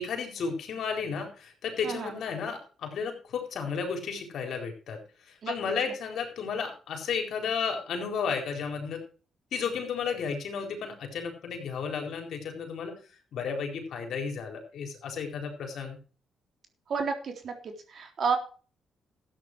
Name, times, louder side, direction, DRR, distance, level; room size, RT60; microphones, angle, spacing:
voice 1, 0.0-5.0 5.3-9.0 9.5-12.9 13.3-16.0, left 5 dB, 70° left, 3 dB, 4.2 m, -33 dB
voice 2, 1.8-2.1 5.4-5.5 16.9-18.4, right 5 dB, 55° right, 4 dB, 3.6 m, -31 dB
13.5 x 9.2 x 4.6 m, 0.38 s
cardioid pair, 90°, 0 cm